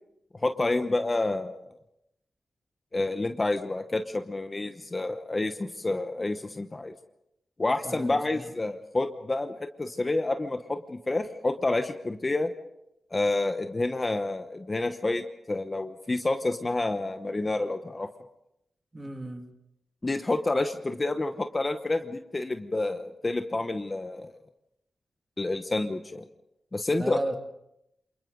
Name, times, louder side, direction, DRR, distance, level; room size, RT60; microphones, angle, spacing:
voice 1, 0.4-1.6 2.9-6.9 7.6-12.5 13.1-18.1 20.0-24.3 25.4-26.2 26.7-27.2, left 2 dB, 25° left, 7 dB, 1.0 m, -29 dB
voice 2, 7.8-8.4 18.9-19.5 27.0-27.4, right 1 dB, 20° right, 4 dB, 2.2 m, -34 dB
28.5 x 27.5 x 3.9 m, 0.82 s
wide cardioid pair, 145°, 0 cm